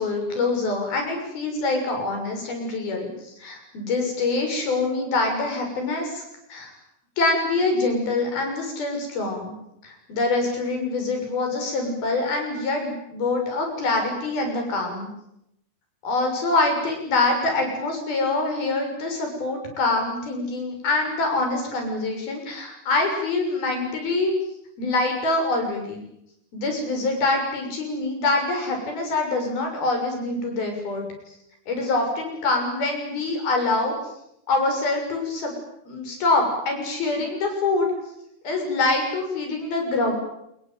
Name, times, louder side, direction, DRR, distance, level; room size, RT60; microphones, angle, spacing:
voice 1, 0.0-6.2 6.5-6.7 7.2-9.5 9.8-15.1 16.0-24.3 24.8-26.0 26.5-31.1 31.7-33.9 34.5-35.5 35.9-37.9 38.5-40.1, left 3 dB, 80° left, 3 dB, 8.6 m, -25 dB
27.0 x 21.5 x 9.2 m, 0.81 s
omnidirectional pair, 4.2 m